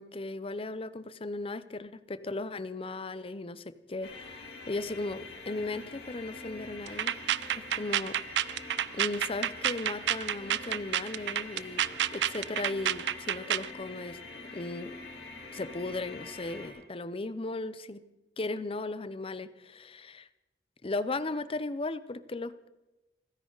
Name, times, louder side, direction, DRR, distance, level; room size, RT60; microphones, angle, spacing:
voice 1, 0.0-7.1 7.6-8.2 8.9-11.8 12.1-14.2 14.5-15.0 15.5-18.0 18.4-20.3 20.8-22.7, left 2 dB, 30° left, 14 dB, 0.7 m, -36 dB
sound 1, 4.0-16.7, left 3 dB, 65° left, 4.2 m, -45 dB
sound 2, 6.9-13.7, right 11 dB, 70° right, 0.4 m, -30 dB
29.0 x 10.5 x 4.0 m, 1.1 s
head